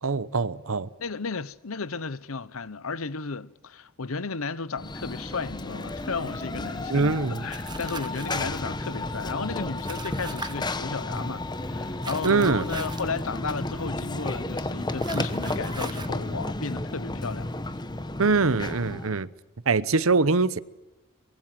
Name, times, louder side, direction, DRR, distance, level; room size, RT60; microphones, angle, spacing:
voice 1, 0.0-0.9 6.9-7.4 12.2-12.6 18.2-19.3 19.7-20.6, right 4 dB, 75° right, 0.9 m, -23 dB
voice 2, 1.0-17.5, left 4 dB, 75° left, 0.9 m, -34 dB
Run / Train, 4.8-19.2, left 2 dB, 20° left, 1.1 m, -32 dB
sound 1, 7.5-8.6 9.8-10.5 12.0-13.1 15.0-16.1, right 4 dB, 20° right, 1.8 m, -40 dB
23.5 x 22.5 x 7.7 m
head